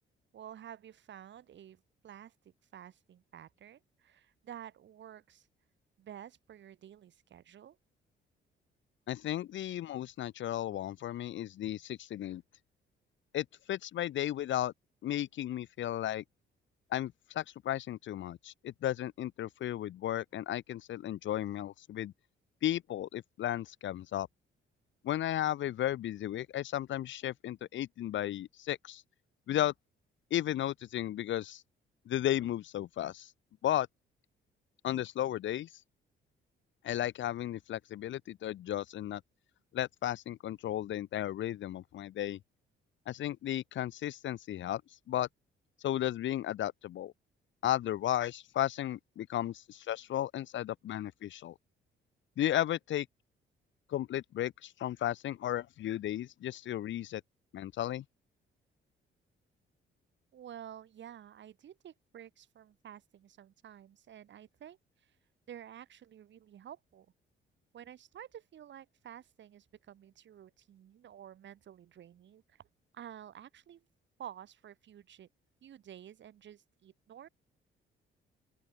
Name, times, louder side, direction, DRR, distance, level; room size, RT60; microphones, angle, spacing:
voice 1, 0.3-2.3 2.7-5.5 6.0-7.8 60.3-64.8 65.5-67.1 67.7-72.7 72.9-73.8 74.2-75.3 75.6-77.3, right 10 dB, 65° right, 6.8 m, -51 dB
voice 2, 9.1-12.4 13.3-14.7 15.0-16.2 16.9-22.1 22.6-24.3 25.0-29.0 29.5-29.7 30.3-31.6 32.0-33.3 33.6-33.9 34.8-35.7 36.8-39.2 39.7-42.4 43.1-44.8 45.1-45.3 45.8-47.1 47.6-51.5 52.4-53.1 53.9-57.2 57.5-58.0, left 12 dB, 70° left, 1.3 m, -34 dB
open air
cardioid pair, 90°, 20 cm